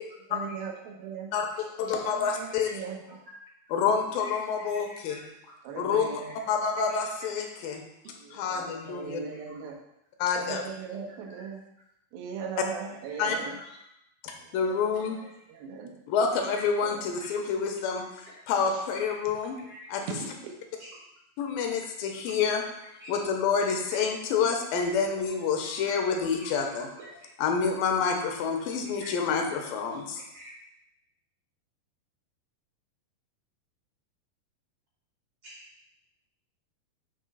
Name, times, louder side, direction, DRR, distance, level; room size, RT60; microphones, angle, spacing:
voice 1, 0.3-1.3 1.8-3.2 5.6-6.3 8.2-9.8 10.3-11.6 12.1-13.6 14.4-15.9 16.8-16.9 18.7-18.8 20.1-20.3, right 6 dB, 85° right, 1 dB, 2.8 m, -39 dB
voice 2, 1.3-2.7 3.7-5.2 5.8-6.1 6.5-7.8 8.3-9.2 10.2-10.6 13.2-13.4 14.2-15.2 16.1-18.0 18.5-19.6 19.9-20.0 21.4-22.6 23.1-26.9 27.4-30.2, left 6 dB, 85° left, 3 dB, 2.5 m, -28 dB
voice 3, 2.2-2.8 3.1-3.3 4.2-5.6 6.3-6.5 6.9-7.3 8.0-8.1 8.8-8.9 9.3-9.7 10.7-10.8 11.3-11.5 13.1-13.7 14.9-15.1 16.5-16.6 17.2-17.6 17.9-18.4 18.9-19.1 19.7-19.9 20.8-21.0 22.2-22.4 23.0-23.2 23.6-24.1 24.7-25.2 25.6-26.0 26.4-27.2 28.0-28.3 29.0-29.1 29.9-30.5 35.4-35.6, equal, 65° right, -4 dB, 1.5 m, -48 dB
7.6 x 3.2 x 5.4 m, 0.83 s
omnidirectional pair, 4.1 m